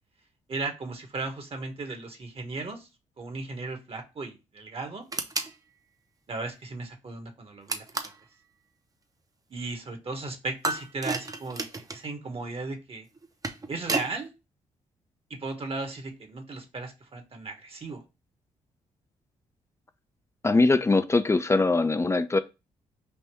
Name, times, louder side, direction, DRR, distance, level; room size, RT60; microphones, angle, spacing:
voice 1, 0.5-2.9 3.2-5.0 6.3-8.1 9.5-13.1 13.7-14.3 15.3-18.0, right 3 dB, 45° right, 1.1 m, -36 dB
sound 1, 5.1-5.5 7.7-8.2 10.6-12.0 13.2-14.1, right 3 dB, 25° right, 0.6 m, -32 dB
voice 2, 20.4-22.4, left 3 dB, 20° left, 0.4 m, -22 dB
3.5 x 2.6 x 4.4 m
cardioid pair, 65°, 14 cm